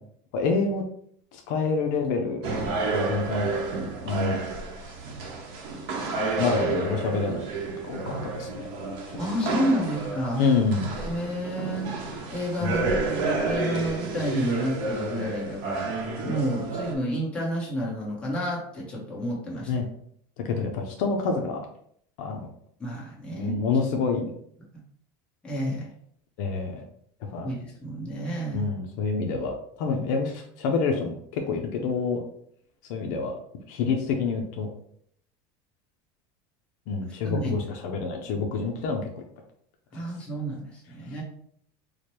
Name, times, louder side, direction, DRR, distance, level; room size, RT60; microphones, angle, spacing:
voice 1, 0.3-0.8 1.3-2.5 2.9-3.5 4.0-4.4 4.8-4.9 6.4-7.4 7.9-8.6 10.4-11.0 12.6-13.0 19.7-19.9 20.4-21.6 22.2-22.5 23.4-24.3 26.4-26.8 27.3-27.5 28.5-32.2 32.9-33.3 33.7-34.7 36.9-39.0, left 4 dB, 60° left, 2 dB, 0.6 m, -27 dB
sound 1, 2.4-16.9, right 3 dB, 50° right, 0.9 m, -30 dB
voice 2, 9.2-10.5 11.0-12.8 13.4-15.9 16.2-19.8 22.8-23.5 25.4-25.9 27.4-28.6 37.2-37.7 39.9-41.2, equal, 10° left, -5 dB, 1.1 m, -30 dB
4.7 x 2.2 x 3.0 m, 0.65 s
cardioid pair, 160°, 11 cm